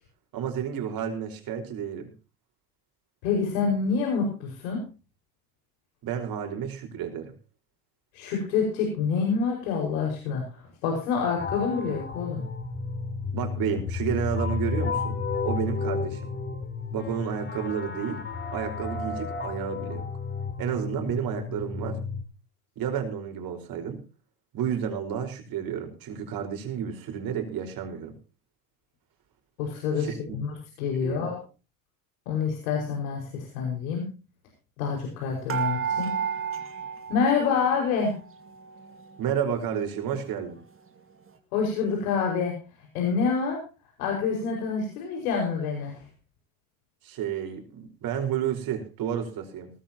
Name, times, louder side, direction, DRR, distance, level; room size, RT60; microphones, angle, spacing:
voice 1, 0.3-2.1 6.0-7.3 13.3-16.3 16.9-18.2 18.5-20.1 20.6-22.0 22.8-24.0 24.5-28.2 30.0-30.4 30.9-31.3 39.2-40.6 47.0-49.7, right 8 dB, 55° right, 5 dB, 4.9 m, -31 dB
voice 2, 3.2-4.8 8.1-12.4 29.6-31.4 32.3-34.0 34.8-36.1 37.1-38.1 41.5-42.5 42.9-43.6 44.0-46.0, left 5 dB, 85° left, 0 dB, 5.5 m, -27 dB
sound 1, 11.4-22.2, left 5 dB, 25° left, 4.3 m, -32 dB
sound 2, 35.5-38.0 38.3-39.3 39.8-39.9 40.2-40.3, right 7 dB, 30° right, 2.5 m, -32 dB
19.0 x 14.0 x 2.9 m, 0.33 s
supercardioid pair, 100°, 41 cm